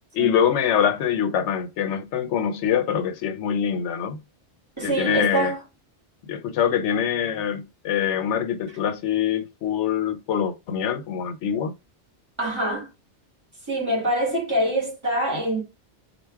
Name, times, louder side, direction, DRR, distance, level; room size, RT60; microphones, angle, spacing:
voice 1, 0.1-4.2 4.8-5.5 6.3-11.7, left 8 dB, 80° left, 0.9 m, -24 dB
voice 2, 4.8-5.6 12.4-12.9 13.7-15.6, right 1 dB, 25° right, 2.0 m, -24 dB
3.4 x 2.3 x 4.4 m
omnidirectional pair, 1.2 m